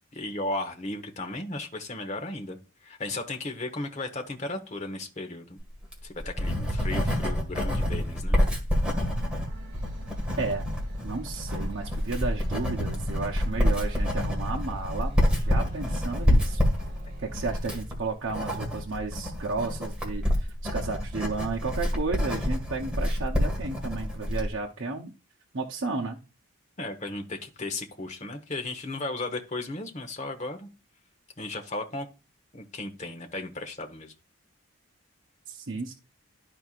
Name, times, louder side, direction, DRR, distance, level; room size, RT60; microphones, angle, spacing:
voice 1, 0.1-5.6 6.0-8.4 26.8-30.7 31.4-32.1 32.5-34.1, left 2 dB, 35° left, 1.1 m, -35 dB
Writing, 5.7-24.5, equal, 5° right, 1.7 m, -27 dB
sound 1, 9.2-17.4, right 1 dB, 45° right, 3.3 m, -43 dB
voice 2, 11.0-16.6 17.2-25.1 25.5-26.2 35.5-35.9, right 3 dB, 60° right, 0.8 m, -33 dB
12.5 x 4.4 x 2.5 m
head